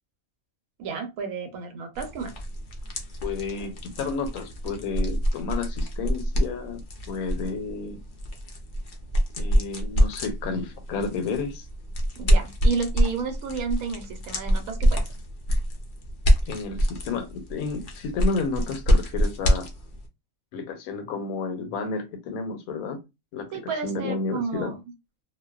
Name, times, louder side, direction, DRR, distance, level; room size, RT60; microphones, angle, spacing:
voice 1, 0.8-2.3 12.2-15.1 23.5-24.8, right 5 dB, 85° right, 6 dB, 1.1 m, -31 dB
sound 1, 2.0-20.1, equal, 65° left, 0.5 m, -26 dB
voice 2, 3.2-6.8 7.1-8.0 9.4-11.7 16.5-19.7 20.5-23.0 23.3-23.6 23.8-24.7, left 4 dB, 85° left, 6 dB, 1.1 m, -31 dB
2.5 x 2.1 x 2.2 m, 0.24 s
omnidirectional pair, 1.5 m